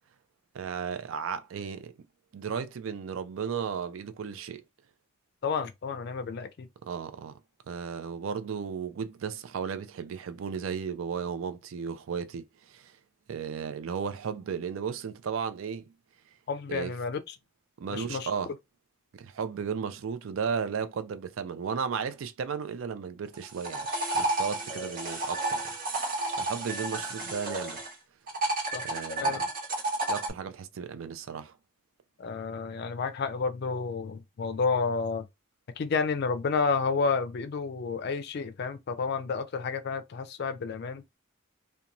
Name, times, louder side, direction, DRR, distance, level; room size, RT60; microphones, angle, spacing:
voice 1, 0.5-1.9 2.3-4.6 6.8-7.3 7.7-12.9 13.3-15.9 16.7-16.9 17.8-18.5 19.1-23.9 24.1-25.6 25.9-26.0 26.4-27.8 28.8-29.5 30.1-31.5, right 6 dB, 85° right, 0.4 m, -34 dB
voice 2, 5.4-6.7 16.5-17.4 17.9-18.3 28.7-28.8 29.2-29.5 32.2-35.3 35.8-41.0, left 5 dB, 55° left, 0.4 m, -30 dB
sound 1, 23.3-27.9 28.3-30.3, right 2 dB, 45° right, 1.3 m, -31 dB
2.9 x 2.2 x 2.5 m
head